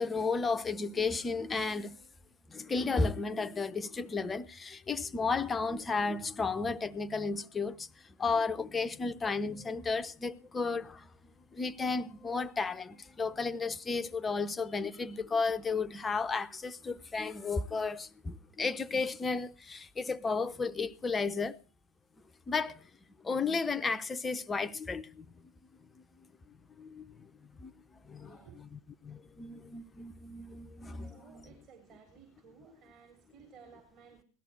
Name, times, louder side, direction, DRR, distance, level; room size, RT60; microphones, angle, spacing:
voice 1, 0.0-2.0 2.5-11.1 11.5-21.6 22.5-22.9 23.2-25.3 26.0-26.1 26.8-27.7 28.0-31.4, left 4 dB, 15° left, 0.6 m, -33 dB
voice 2, 28.2-28.6 31.0-34.2, right 6 dB, 40° right, 4.0 m, -57 dB
18.0 x 12.5 x 4.5 m
figure-of-eight pair, 90°, 0 cm